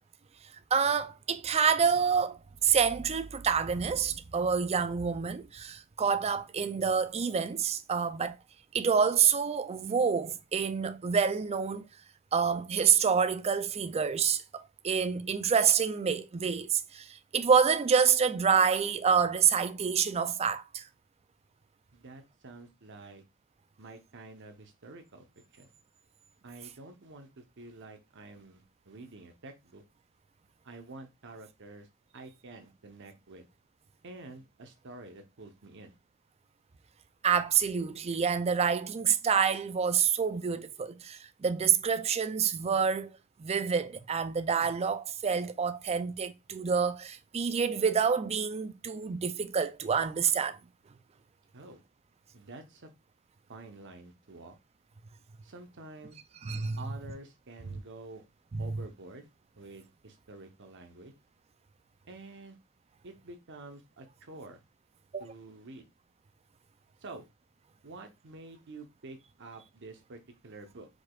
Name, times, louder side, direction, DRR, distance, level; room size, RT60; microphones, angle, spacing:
voice 1, 0.7-8.4 8.7-11.8 12.3-14.4 14.8-20.9 37.2-43.1 43.4-50.6 56.4-56.8 58.5-58.6 65.1-65.2, right 6 dB, 30° right, 0.4 m, -27 dB
voice 2, 21.9-23.2 23.8-25.3 25.5-25.7 26.4-29.8 30.6-31.9 32.1-33.5 34.0-36.0 51.5-51.8 52.3-52.9 53.5-54.6 55.4-56.2 56.8-58.2 58.6-59.3 59.6-61.1 62.1-62.6 63.0-64.6 65.2-65.9 67.0-67.3 67.8-70.9, right 2 dB, 60° right, 1.0 m, -48 dB
4.8 x 4.2 x 2.4 m
head